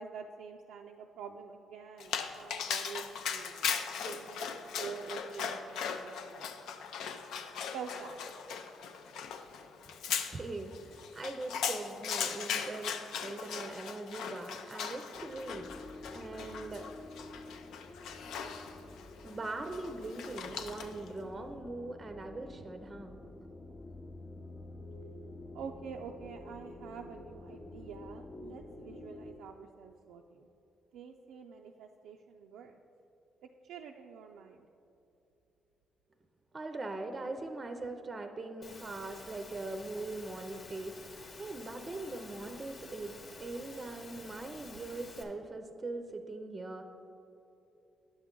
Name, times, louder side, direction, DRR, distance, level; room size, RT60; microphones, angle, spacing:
voice 1, 0.0-6.7 7.7-8.2 25.5-30.5 30.9-32.8 33.6-34.7, right 6 dB, 85° right, 2 dB, 0.3 m, -47 dB
Dog, 2.0-21.1, left 7 dB, 80° left, 0.4 m, -39 dB
voice 2, 10.3-16.9 19.2-23.2 36.5-41.0 41.4-46.8, right 2 dB, 25° right, 6 dB, 0.5 m, -41 dB
sound 1, 15.1-29.3, left 2 dB, 25° left, 0.6 m, -49 dB
Engine / Mechanisms, 38.6-45.2, left 3 dB, 55° left, 1.0 m, -50 dB
9.4 x 6.9 x 3.7 m, 2.8 s
cardioid pair, 90°, 0 cm